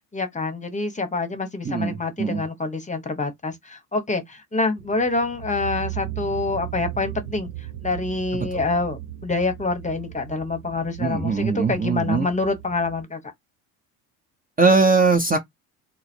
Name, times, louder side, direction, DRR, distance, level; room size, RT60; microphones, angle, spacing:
voice 1, 0.1-13.2, left 3 dB, 15° left, 1.0 m, -26 dB
voice 2, 1.6-2.4 8.5-8.6 11.0-12.3 14.6-15.4, right 4 dB, 20° right, 0.8 m, -20 dB
sound 1, 4.8-13.0, right 13 dB, 60° right, 1.0 m, -37 dB
4.0 x 2.0 x 4.3 m
supercardioid pair, 100°, 45 cm